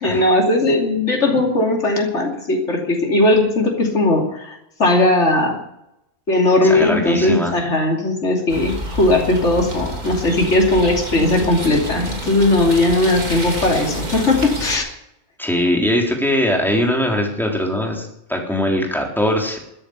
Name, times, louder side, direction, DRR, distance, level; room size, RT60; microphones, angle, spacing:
voice 1, 0.0-5.6 6.3-14.9, left 2 dB, 70° left, 1 dB, 3.2 m, -18 dB
voice 2, 6.6-7.6 15.4-19.6, left 1 dB, ahead, 0 dB, 3.8 m, -21 dB
sound 1, 8.5-14.8, right 1 dB, 35° right, 2.8 m, -28 dB
13.5 x 10.0 x 9.6 m, 0.80 s
omnidirectional pair, 1.3 m